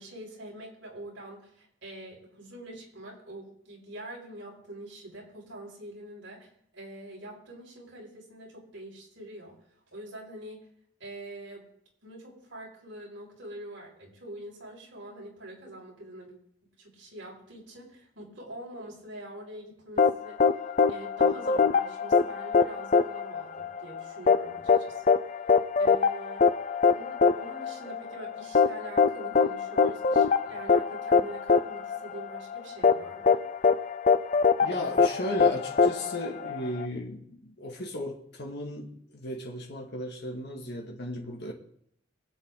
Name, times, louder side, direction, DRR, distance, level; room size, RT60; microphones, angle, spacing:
voice 1, 0.0-9.6 9.9-10.7 11.0-11.6 12.0-16.4 16.8-20.5 20.9-25.2 25.8-26.5 26.9-33.4, right 1 dB, 70° right, 5.8 m, -44 dB
sound 1, 20.0-36.9, left 5 dB, 40° left, 0.6 m, -23 dB
voice 2, 34.6-41.5, left 1 dB, 60° left, 2.1 m, -35 dB
25.0 x 8.3 x 3.9 m
head